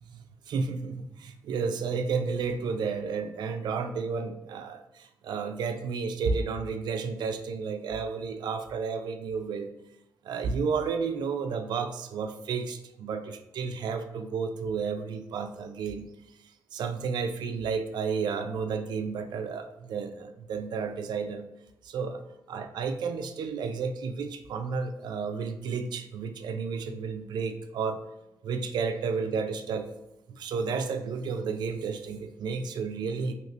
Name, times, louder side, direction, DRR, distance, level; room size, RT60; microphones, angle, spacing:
voice 1, 0.1-9.7 10.2-16.1 16.7-21.5 21.8-22.2 22.5-28.0 28.4-29.9 30.3-33.3, right 5 dB, 65° right, 7 dB, 0.4 m, -32 dB
2.9 x 2.7 x 3.1 m, 0.87 s
cardioid pair, 75°, 8 cm